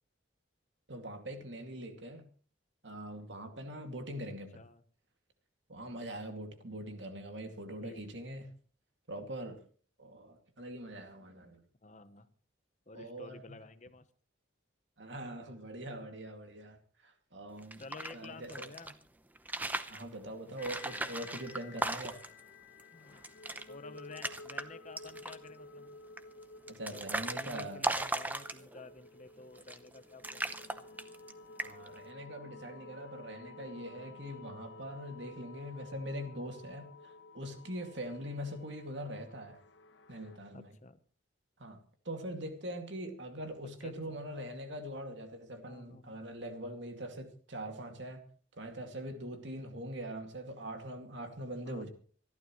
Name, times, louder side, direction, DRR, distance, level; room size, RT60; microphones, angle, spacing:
voice 1, 0.9-2.3 2.8-4.6 5.7-8.5 9.1-9.6 10.0-11.6 12.9-13.4 15.0-17.8 18.1-18.7 19.9-22.2 26.7-27.8 31.6-39.6 40.1-40.8 41.6-41.8 42.0-48.2 48.5-51.9, right 1 dB, 70° right, 2.4 m, -43 dB
voice 2, 11.8-12.3 12.9-14.1 17.8-19.0 22.9-23.3 23.7-26.0 26.9-27.0 27.3-30.9 40.5-41.0 43.8-44.3 45.6-46.2 51.6-51.9, left 3 dB, 40° left, 1.0 m, -51 dB
sound 1, 17.6-18.9 19.4-20.0 20.6-22.4 22.8-22.9 23.1-23.6 24.0-24.6 25.0-25.5 26.2-28.9 29.6-30.0 30.2-31.3 31.6-32.0, right 2 dB, 10° right, 0.7 m, -37 dB
sound 2, 20.6-40.4, left 3 dB, 70° left, 1.0 m, -53 dB
26.0 x 12.0 x 3.1 m
head